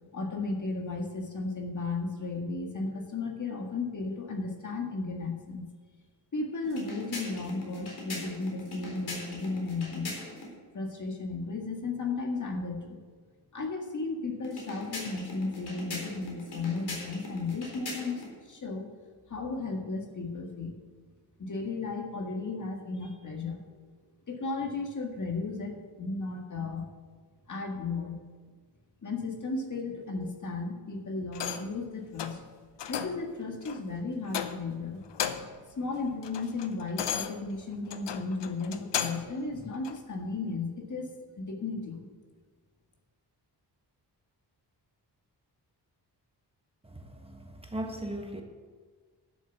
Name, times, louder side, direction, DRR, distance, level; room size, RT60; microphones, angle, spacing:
voice 1, 0.1-5.7 6.3-10.1 10.7-13.0 13.5-18.2 18.5-18.9 19.3-20.8 21.4-23.6 24.3-26.9 27.5-28.2 29.0-32.4 32.9-35.0 35.7-42.1, left 3 dB, 45° left, 2 dB, 1.9 m, -34 dB
sound 1, 6.6-10.5 14.4-18.3, left 2 dB, 65° left, 4.0 m, -41 dB
sound 2, 31.3-31.8 32.2-32.4 32.8-33.2 33.7-33.8 34.3-34.8 35.1-35.6 36.0-39.3 39.8-40.0, left 9 dB, 85° left, 0.9 m, -35 dB
voice 2, 46.8-48.4, right 1 dB, 15° right, 2 dB, 1.4 m, -38 dB
11.5 x 7.0 x 7.0 m, 1.5 s
wide cardioid pair, 110°, 41 cm